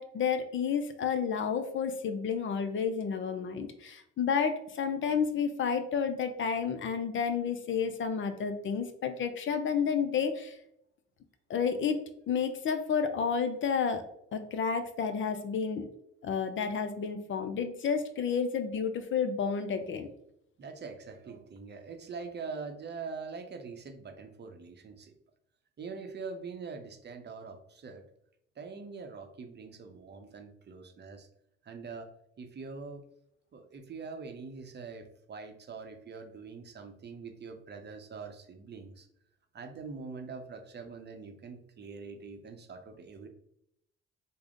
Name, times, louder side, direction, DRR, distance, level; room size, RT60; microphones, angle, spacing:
voice 1, 0.0-10.6 11.5-14.0 14.3-15.9 16.2-20.1, left 6 dB, 45° left, 8 dB, 0.5 m, -31 dB
voice 2, 20.6-25.1 25.8-28.0 28.6-31.3 31.6-33.1 33.5-39.1 39.5-43.3, right 4 dB, 35° right, 5 dB, 0.7 m, -43 dB
3.4 x 2.1 x 3.7 m, 0.75 s
hypercardioid pair, 65°, 29 cm